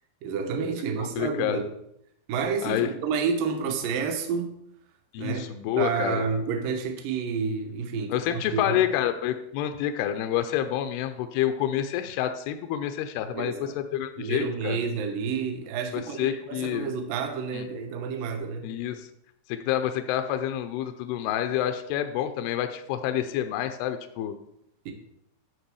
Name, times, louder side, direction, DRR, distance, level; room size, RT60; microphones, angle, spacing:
voice 1, 0.2-1.6 2.3-4.6 5.2-5.5 5.8-8.8 13.3-13.8 14.2-18.7 24.9-25.0, right 5 dB, 70° right, 4 dB, 2.2 m, -30 dB
voice 2, 1.0-1.6 2.6-2.9 5.1-6.3 8.1-14.8 15.9-16.9 17.5-17.7 18.6-19.1 19.5-24.3, left 11 dB, 85° left, 8 dB, 2.3 m, -28 dB
10.5 x 4.0 x 6.9 m, 0.77 s
omnidirectional pair, 5.2 m